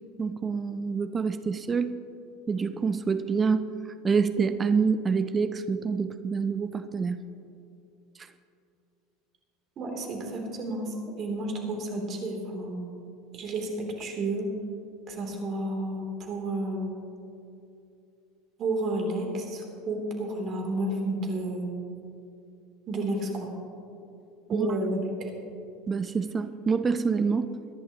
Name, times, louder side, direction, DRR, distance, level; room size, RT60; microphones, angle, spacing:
voice 1, 0.2-1.9 2.5-3.6 4.0-7.2 24.5-24.7 25.9-27.5, right 5 dB, 25° right, 11 dB, 0.6 m, -26 dB
voice 2, 9.8-12.9 13.3-14.5 15.1-17.0 18.6-21.8 22.9-23.5 24.5-25.3, right 2 dB, 45° right, 1 dB, 3.1 m, -31 dB
23.0 x 11.0 x 3.0 m, 2.7 s
hypercardioid pair, 80°, 0 cm